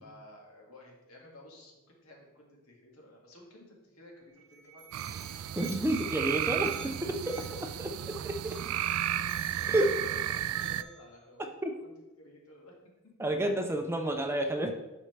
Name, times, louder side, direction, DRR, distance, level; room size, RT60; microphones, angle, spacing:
voice 1, 0.0-5.3 6.6-6.7 7.2-7.3 7.8-8.1 9.1-11.9 12.2-12.8 13.0-13.2, left 1 dB, 75° left, -1 dB, 2.0 m, -54 dB
Musical instrument, 4.2-11.2, right 5 dB, 55° right, 0.9 m, -51 dB
sound 1, 4.9-10.8, right 11 dB, 75° right, 0.3 m, -33 dB
voice 2, 5.6-7.2 7.8-8.6 9.7-9.9 11.6-11.7 13.2-14.7, right 1 dB, 10° right, 4 dB, 0.5 m, -30 dB
11.5 x 4.4 x 3.3 m, 1.0 s
head